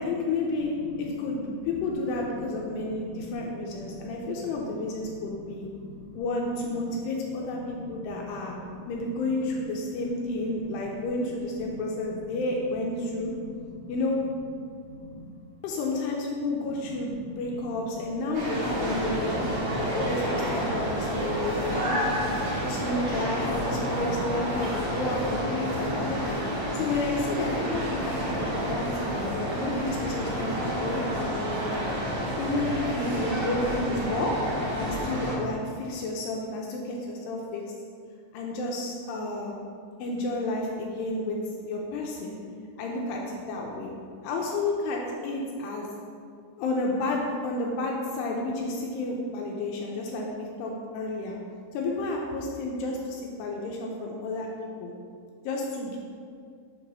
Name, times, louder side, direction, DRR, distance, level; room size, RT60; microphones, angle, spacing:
voice 1, 0.0-5.7 6.2-8.6 8.9-13.3 13.9-14.2 15.6-26.4 26.7-32.0 32.4-34.3 34.8-37.6 38.3-39.6 40.0-41.4 41.6-42.4 42.8-43.9 44.2-45.9 46.6-51.4 51.7-54.5 54.8-54.9 55.4-56.0, left 2 dB, 85° left, -1 dB, 2.4 m, -31 dB
voice 2, 2.8-4.3 4.6-6.1 7.7-8.1 8.6-8.9 13.4-13.9 14.8-15.3 17.3-17.4 18.6-19.2 20.9-21.4 21.8-23.1, equal, 90° right, -5 dB, 2.0 m, -44 dB
sound 1, 18.3-35.4, equal, 60° right, 1.7 m, -29 dB
7.2 x 2.8 x 5.3 m, 2.3 s
omnidirectional pair, 5.1 m